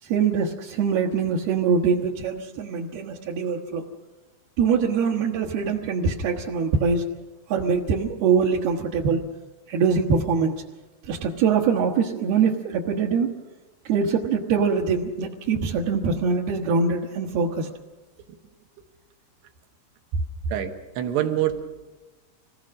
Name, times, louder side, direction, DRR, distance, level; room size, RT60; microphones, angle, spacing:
voice 1, 0.0-3.8 4.6-7.0 7.5-9.2 9.7-10.6 11.0-13.3 13.8-17.7, right 5 dB, 70° right, -3 dB, 3.2 m, -23 dB
voice 2, 20.5-21.6, right 11 dB, 90° right, 5 dB, 3.5 m, -26 dB
26.0 x 18.0 x 6.3 m, 1.2 s
omnidirectional pair, 4.8 m